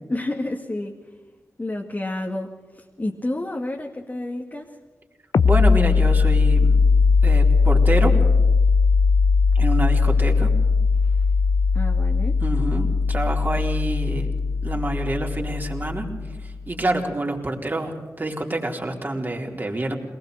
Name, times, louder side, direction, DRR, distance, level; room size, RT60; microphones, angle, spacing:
voice 1, 0.1-1.0 1.6-4.8 11.7-12.4, left 1 dB, 30° left, 0 dB, 2.1 m, -30 dB
sound 1, 5.3-16.7, left 4 dB, 70° left, 0.7 m, -19 dB
voice 2, 5.4-6.8 7.2-8.1 9.5-10.5 12.4-14.3 14.6-16.1 16.4-20.0, right 2 dB, 35° right, 1 dB, 4.1 m, -27 dB
22.5 x 19.5 x 6.7 m, 1.3 s
cardioid pair, 40°, 6 cm